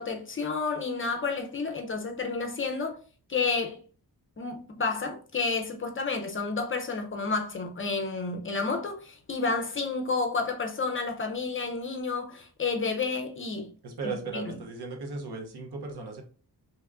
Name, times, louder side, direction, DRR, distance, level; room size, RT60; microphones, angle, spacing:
voice 1, 0.0-3.0 3.3-3.8 4.4-13.7 14.0-14.5, left 4 dB, 35° left, 0.4 m, -30 dB
voice 2, 13.8-16.2, right 3 dB, 85° right, 0.8 m, -36 dB
2.8 x 2.4 x 3.3 m
wide cardioid pair, 180°, 38 cm